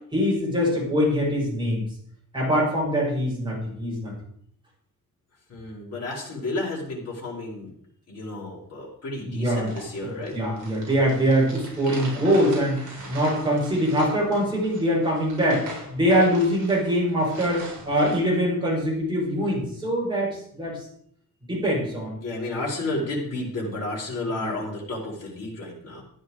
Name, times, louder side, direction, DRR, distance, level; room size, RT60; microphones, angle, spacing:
voice 1, 0.1-1.9 2.3-4.1 9.2-9.7 10.0-20.8 21.5-22.2 24.3-24.5, equal, 15° right, -5 dB, 6.5 m, -23 dB
voice 2, 5.5-7.7 8.1-10.4 12.9-13.1 17.2-17.3 22.2-26.0, left 2 dB, 45° left, -4 dB, 4.7 m, -32 dB
sound 1, 9.5-18.2, right 2 dB, 60° right, 6.1 m, -41 dB
14.0 x 9.6 x 4.9 m, 0.64 s
wide cardioid pair, 180°, 34 cm